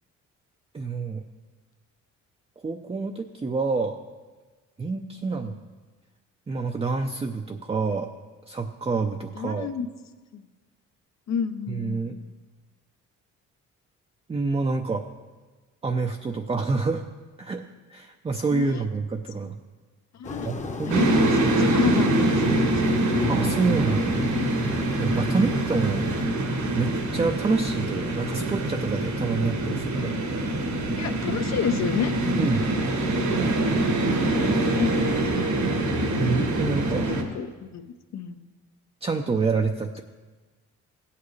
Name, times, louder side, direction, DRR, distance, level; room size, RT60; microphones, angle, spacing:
voice 1, 0.7-1.2 2.6-4.0 4.8-5.6 6.5-8.1 8.5-9.7 11.7-12.2 14.3-15.1 15.8-17.0 17.4-17.6 17.9-19.6 20.4-21.1 23.3-24.2 25.0-26.1 26.7-30.2 32.3-32.7 34.5-34.7 36.2-37.1 39.0-40.0, right 4 dB, 20° right, 3 dB, 0.6 m, -27 dB
voice 2, 9.4-9.9 10.3-10.4 11.3-12.3 18.5-18.8 20.1-20.5 21.0-22.9 31.0-32.1 34.6-35.1 37.1-37.8 38.1-38.4, left 7 dB, 60° left, 9 dB, 0.8 m, -30 dB
sound 1, 20.2-26.3, left 3 dB, 25° left, 0.9 m, -36 dB
sound 2, 20.9-37.2, right 1 dB, 70° right, 1.6 m, -24 dB
15.5 x 8.4 x 3.2 m, 1.3 s
cardioid pair, 90°, 30 cm